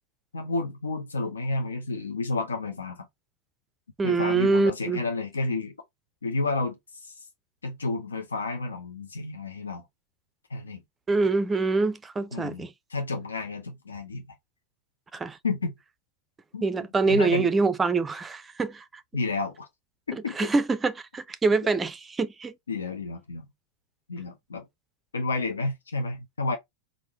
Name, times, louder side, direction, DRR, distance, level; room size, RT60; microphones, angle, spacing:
voice 1, 0.3-3.1 4.0-5.7 6.2-7.1 7.6-9.8 10.5-10.8 12.3-12.6 12.9-14.2 15.4-15.7 16.5-16.7 17.0-17.5 19.1-19.7 20.1-20.5 22.7-23.5 24.1-24.6 25.1-26.6, left 3 dB, 75° left, 0.7 m, -31 dB
voice 2, 4.0-5.0 11.1-12.7 15.1-15.4 16.6-18.8 20.1-22.5, right 3 dB, 15° right, 0.4 m, -25 dB
3.6 x 2.5 x 4.2 m
figure-of-eight pair, 90°, 0 cm